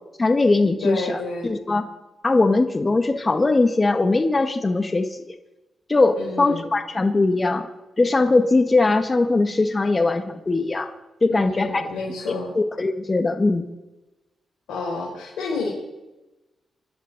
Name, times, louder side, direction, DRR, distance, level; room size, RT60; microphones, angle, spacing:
voice 1, 0.2-1.9 2.2-5.3 5.9-7.7 8.0-10.9 11.2-11.8 12.5-13.7, left 3 dB, 35° left, 7 dB, 1.5 m, -20 dB
voice 2, 0.8-1.5 6.2-6.7 11.3-12.5 14.7-15.7, left 3 dB, 80° left, -4 dB, 4.1 m, -30 dB
24.5 x 11.0 x 4.1 m, 1.0 s
supercardioid pair, 45°, 0 cm